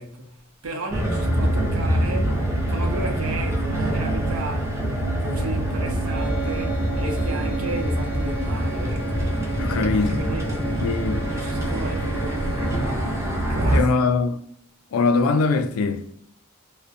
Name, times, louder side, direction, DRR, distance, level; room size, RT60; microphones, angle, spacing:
voice 1, 0.0-2.4 2.7-4.8 5.2-13.9, right 1 dB, 85° right, 0.7 m, -34 dB
sound 1, 0.9-13.8, right 1 dB, 15° right, 0.5 m, -25 dB
sound 2, 6.0-13.2, right 2 dB, 25° left, 0.8 m, -34 dB
voice 2, 9.6-10.2 10.8-11.2 13.7-14.4 14.9-16.0, left 4 dB, 80° left, 0.4 m, -22 dB
2.5 x 2.1 x 2.4 m
head